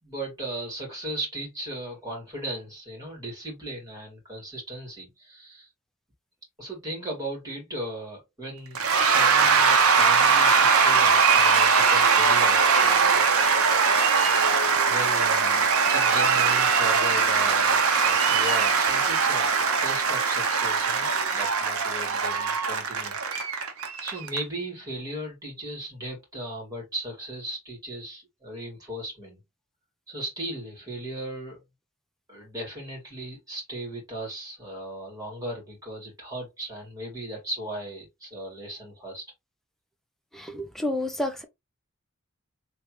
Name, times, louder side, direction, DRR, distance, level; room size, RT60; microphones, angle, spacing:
voice 1, 0.0-5.7 6.6-13.3 14.9-19.5 19.8-23.7 24.0-29.4 30.1-31.6 32.3-39.2, right 1 dB, 15° right, 2.5 m, -37 dB
Cheering / Applause / Crowd, 8.8-24.4, right 5 dB, 80° right, 0.8 m, -21 dB
voice 2, 40.3-41.4, left 1 dB, ahead, 0.6 m, -30 dB
3.4 x 3.2 x 3.1 m
head